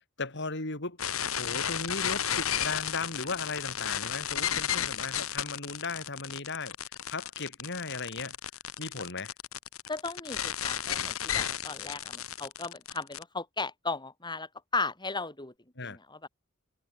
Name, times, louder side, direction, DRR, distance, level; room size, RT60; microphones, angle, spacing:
voice 1, 0.2-6.7 7.1-8.4 8.8-9.3 15.8-16.0, left 3 dB, 60° left, 7.2 m, -37 dB
sound 1, 1.0-13.2, left 9 dB, 90° left, 2.7 m, -33 dB
voice 2, 9.9-15.5 15.8-16.3, left 3 dB, 20° left, 7.2 m, -36 dB
head